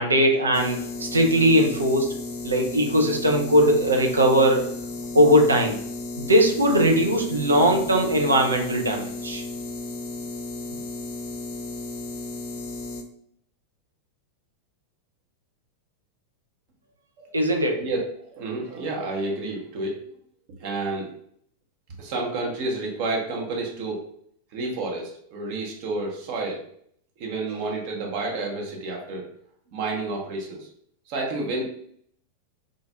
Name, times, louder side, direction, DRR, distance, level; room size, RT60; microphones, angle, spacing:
voice 1, 0.0-2.1 2.4-4.7 5.1-5.8 6.2-9.4 17.3-17.8, equal, 75° right, 2 dB, 0.5 m, -20 dB
sound 1, 0.5-13.0, left 2 dB, 50° left, 0.5 m, -34 dB
voice 2, 18.3-20.0 20.6-21.1 22.0-24.0 24.5-26.6 27.2-29.3 29.7-30.7 31.1-31.6, right 2 dB, 45° right, -1 dB, 0.8 m, -30 dB
3.8 x 2.5 x 2.2 m, 0.65 s
figure-of-eight pair, 90°, 0 cm